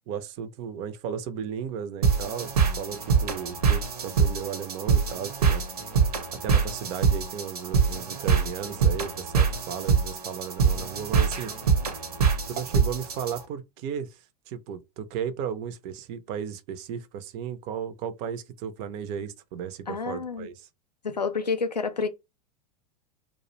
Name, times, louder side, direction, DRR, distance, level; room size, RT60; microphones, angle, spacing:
voice 1, 0.1-5.6 6.4-11.6 12.5-14.2 14.5-20.7, right 8 dB, 35° right, 0.4 m, -35 dB
sound 1, 2.0-13.4, right 6 dB, 65° right, 0.7 m, -24 dB
voice 2, 19.9-20.5 21.0-22.1, left 4 dB, 90° left, 0.4 m, -29 dB
2.3 x 2.0 x 2.9 m
figure-of-eight pair, 90°, 20 cm